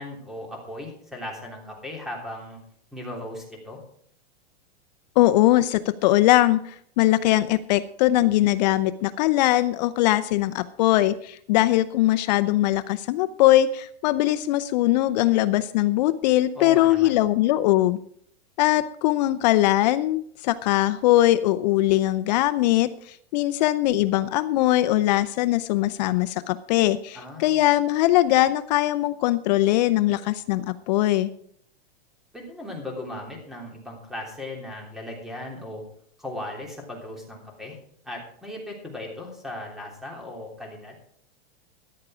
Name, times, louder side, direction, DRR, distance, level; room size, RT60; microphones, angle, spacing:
voice 1, 0.0-2.6 2.9-3.8 16.5-17.2 27.1-27.6 32.3-35.8 36.2-37.8 38.0-41.0, left 1 dB, ahead, 0 dB, 3.2 m, -37 dB
voice 2, 5.2-18.0 18.6-31.3, left 15 dB, 45° left, 14 dB, 0.6 m, -21 dB
14.0 x 10.5 x 4.9 m, 0.63 s
supercardioid pair, 155°, 31 cm